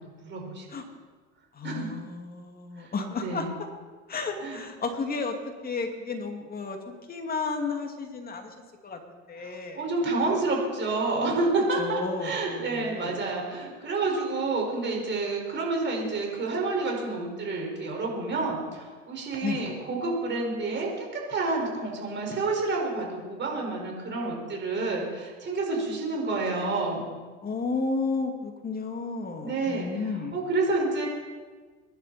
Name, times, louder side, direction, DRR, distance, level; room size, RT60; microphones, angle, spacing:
voice 1, 0.2-0.7 1.6-1.9 2.8-2.9 3.2-3.5 4.4-4.6 9.4-27.1 29.4-29.9 30.3-31.1, right 3 dB, 30° right, 0 dB, 5.4 m, -29 dB
voice 2, 1.5-3.5 4.1-8.5 8.8-9.8 11.8-13.2 19.4-19.6 27.4-30.3, left 4 dB, 25° left, 3 dB, 2.5 m, -32 dB
23.0 x 11.5 x 4.4 m, 1.4 s
supercardioid pair, 105°, 35 cm